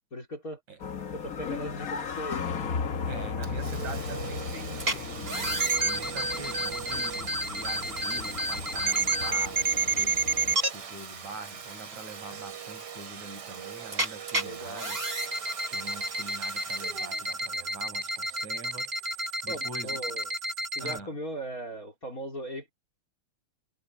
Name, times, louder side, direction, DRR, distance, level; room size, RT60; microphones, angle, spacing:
voice 1, 0.1-0.6 1.1-2.4 14.4-14.9 19.5-20.3 20.8-22.7, right 1 dB, 25° left, 4.1 m, -38 dB
sound 1, 0.8-10.5, left 5 dB, 80° left, 0.7 m, -36 dB
voice 2, 3.1-15.0 15.3-18.9 19.2-20.0 20.8-21.1, right 2 dB, 65° right, 7.5 m, -44 dB
Domestic sounds home sounds, 3.4-18.9, right 7 dB, 45° right, 3.0 m, -42 dB
sound 2, 4.8-4.9 5.3-10.7 13.9-14.4 14.8-21.0, right 2 dB, 20° right, 2.3 m, -30 dB
omnidirectional pair, 3.5 m